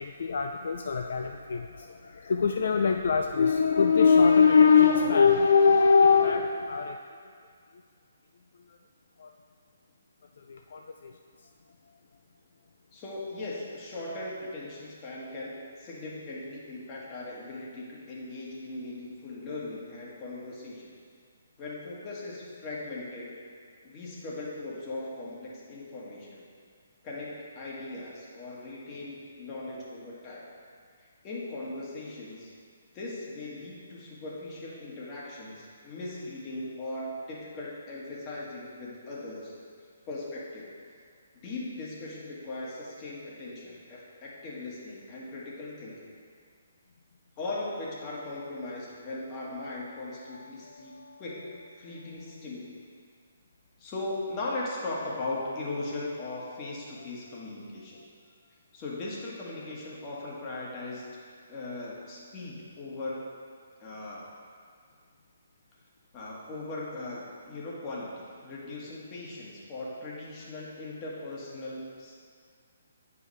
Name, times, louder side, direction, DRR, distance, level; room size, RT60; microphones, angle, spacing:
voice 1, 0.0-7.0 9.2-9.3 10.4-11.1 50.3-51.2, left 5 dB, 60° left, 4 dB, 0.3 m, -23 dB
voice 2, 12.9-20.9 21.6-23.3 23.8-26.4 27.0-30.5 31.0-32.5 32.9-39.5 40.1-40.7 41.3-46.1 47.4-52.8 53.8-58.0 58.7-61.1 61.5-63.2 63.8-64.3 66.1-72.3, left 2 dB, 30° left, -5 dB, 1.5 m, -39 dB
9.1 x 4.8 x 3.2 m, 2.1 s
figure-of-eight pair, 135°, 0 cm